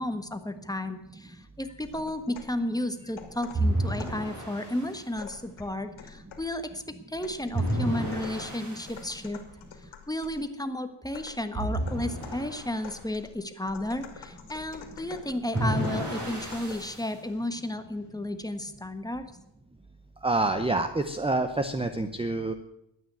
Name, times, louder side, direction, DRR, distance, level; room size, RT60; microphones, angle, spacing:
voice 1, 0.0-9.4 10.1-19.3, left 1 dB, 10° left, 8 dB, 1.4 m, -33 dB
sound 1, 1.8-2.6 3.2-4.3 5.2-6.6 7.2-10.5 11.1-17.0, left 7 dB, 90° left, 2.7 m, -47 dB
sound 2, 3.5-5.0 7.5-9.0 11.5-12.9 15.5-17.1, right 1 dB, 40° right, 5.8 m, -31 dB
voice 2, 20.2-22.5, right 2 dB, 10° right, 9 dB, 0.8 m, -27 dB
12.5 x 9.2 x 9.1 m, 0.84 s
cardioid pair, 90°, 46 cm